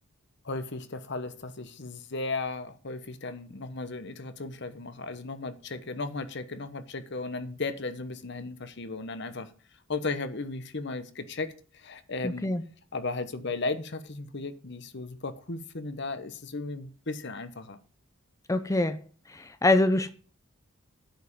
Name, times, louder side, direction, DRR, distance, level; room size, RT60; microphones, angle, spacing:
voice 1, 0.4-9.5 9.9-12.5 12.9-17.8, left 3 dB, 55° left, 1.1 m, -35 dB
voice 2, 12.2-12.6 18.5-19.0 19.3-20.1, left 2 dB, 15° left, 0.6 m, -24 dB
10.5 x 5.5 x 7.3 m
head